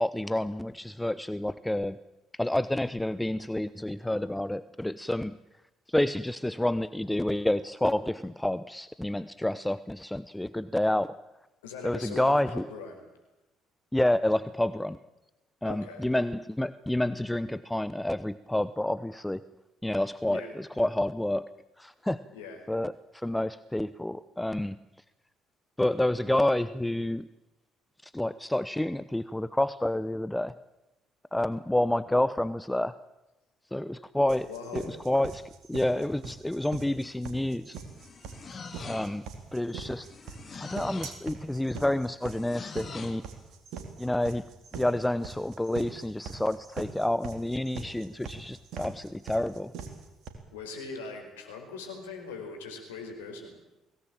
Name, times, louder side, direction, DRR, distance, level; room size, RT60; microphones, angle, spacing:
voice 1, 0.0-2.0 2.3-5.4 5.9-11.2 11.8-12.6 13.9-15.0 15.6-19.4 19.8-21.5 21.8-22.2 22.7-24.8 25.8-27.3 28.0-30.5 31.3-33.0 33.7-34.5 34.7-37.8 38.8-39.3 39.5-40.1 40.6-43.2 44.0-44.4 44.7-49.7, left 1 dB, 10° left, 15 dB, 0.9 m, -29 dB
voice 2, 11.6-13.1 15.6-16.1 20.2-20.5 22.3-22.6 34.5-35.1 50.5-53.6, left 4 dB, 85° left, 4 dB, 4.9 m, -41 dB
sound 1, 34.3-50.3, right 6 dB, 65° right, 4.0 m, -42 dB
sound 2, 37.7-39.3 40.0-41.3 42.2-43.3, left 5 dB, 40° left, 2.9 m, -44 dB
23.0 x 18.0 x 9.0 m, 0.95 s
hypercardioid pair, 50°, 0 cm